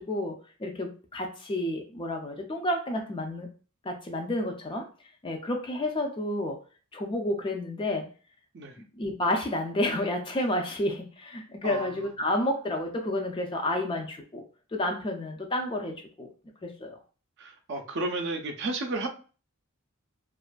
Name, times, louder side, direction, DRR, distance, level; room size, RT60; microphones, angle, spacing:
voice 1, 0.0-3.5 3.8-4.9 5.2-6.6 6.9-8.1 9.0-14.4 14.7-16.3 16.6-17.0, left 1 dB, 25° left, 0.3 m, -30 dB
voice 2, 11.6-12.1 17.4-19.1, right 2 dB, 55° right, 0.5 m, -33 dB
2.5 x 2.4 x 2.2 m
head